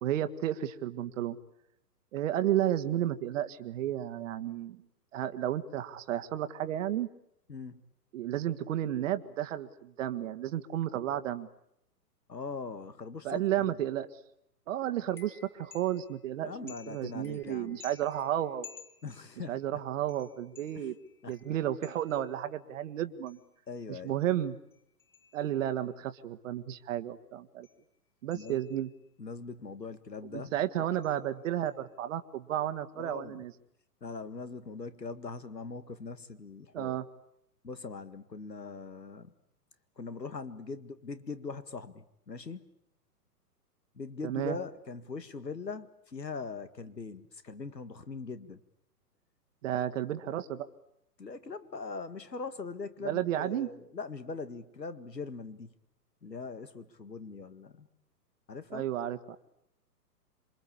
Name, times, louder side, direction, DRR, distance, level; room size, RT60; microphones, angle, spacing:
voice 1, 0.0-1.4 2.1-4.8 5.1-7.1 8.1-11.5 13.2-14.1 14.7-18.7 19.5-20.9 21.3-23.4 23.9-24.6 25.3-27.7 28.2-28.9 30.3-33.5 36.7-37.0 44.2-44.6 49.6-50.7 53.0-53.7 58.7-59.4, right 12 dB, 50° right, 10 dB, 1.6 m, -32 dB
voice 2, 12.3-13.6 16.4-17.8 19.0-19.5 21.2-21.3 23.7-24.2 28.3-28.6 29.2-30.5 33.0-33.4 34.0-36.9 37.6-39.3 40.0-42.6 44.0-48.6 51.2-55.7 56.2-57.9 58.5-58.8, left 4 dB, 90° left, 12 dB, 2.0 m, -41 dB
sound 1, 15.1-16.2 16.7-19.6 20.1-22.5 23.3-23.6 24.1-25.8 27.6-27.8 28.3-29.1 30.9-31.2 31.4-31.8, left 6 dB, 5° left, 1.4 m, -55 dB
27.5 x 23.5 x 8.6 m, 0.78 s
figure-of-eight pair, 120°, 48 cm